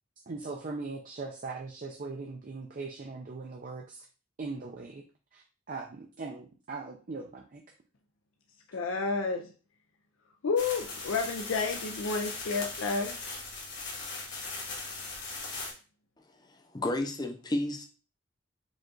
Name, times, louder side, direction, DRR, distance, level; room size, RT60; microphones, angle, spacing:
voice 1, 0.3-4.1 4.4-5.0 5.3-7.6, right 3 dB, 40° right, 1 dB, 0.5 m, -40 dB
voice 2, 8.7-9.5 10.4-13.2, left 4 dB, 80° left, 2 dB, 0.5 m, -30 dB
sound 1, 10.6-15.7, left 3 dB, 60° left, 1.6 m, -39 dB
voice 3, 16.3-17.9, left 1 dB, 20° left, 4 dB, 0.6 m, -32 dB
5.1 x 2.4 x 3.8 m, 0.36 s
head